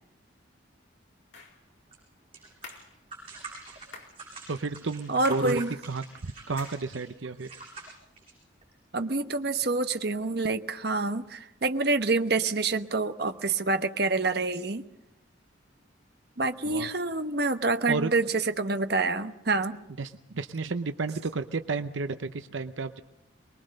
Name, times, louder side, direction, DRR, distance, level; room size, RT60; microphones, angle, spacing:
sound 1, 1.3-1.6 2.6-2.9 3.9-4.2 5.2-5.6 6.6-6.8, left 4 dB, 70° left, 4.1 m, -45 dB
sound 2, 1.9-2.0 2.3-8.7, right 3 dB, 30° right, 7.9 m, -44 dB
voice 1, 4.5-7.5 16.7-16.9 17.9-18.1 20.0-23.0, right 4 dB, 75° right, 9 dB, 0.8 m, -32 dB
voice 2, 5.1-5.8 8.9-14.8 16.4-19.8, right 3 dB, 55° right, 8 dB, 1.1 m, -27 dB
24.0 x 21.5 x 6.5 m, 0.86 s
head